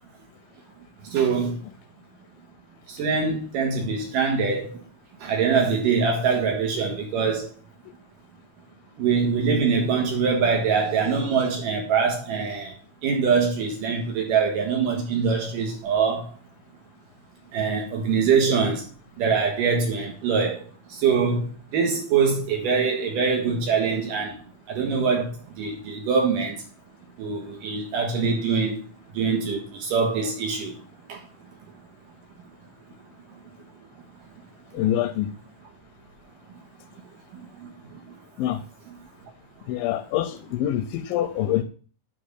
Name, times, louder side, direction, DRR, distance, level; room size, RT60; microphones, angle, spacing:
voice 1, 1.0-1.6 2.9-4.8 5.2-7.5 9.0-12.7 13.0-16.3 17.5-18.8 19.2-24.4 24.7-26.6 27.2-28.8 29.1-30.7 31.1-31.2 37.3-38.0, right 5 dB, 70° right, 2.9 m, -24 dB
voice 2, 34.7-35.3 38.4-38.6 39.7-41.6, left 12 dB, 85° left, 2.3 m, -25 dB
9.3 x 3.5 x 6.6 m
omnidirectional pair, 4.1 m